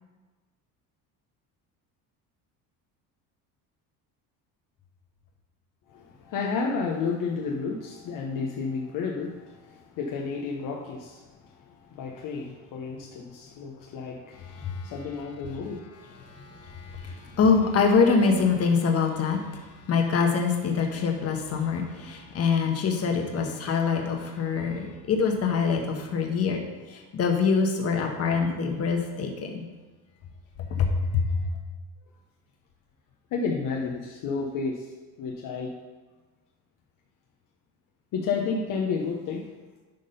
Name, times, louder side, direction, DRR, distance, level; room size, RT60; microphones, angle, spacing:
voice 1, 5.9-14.5 14.8-15.8 33.3-34.9 35.2-35.7 38.1-39.5, left 5 dB, 55° left, 0 dB, 1.0 m, -31 dB
voice 2, 14.5-14.9 16.2-19.4 19.9-26.6 26.9-29.7 30.7-30.9 31.1-31.3, left 5 dB, 40° left, 2 dB, 1.3 m, -25 dB
10.5 x 3.7 x 5.5 m, 1.3 s
cardioid pair, 140°, 39 cm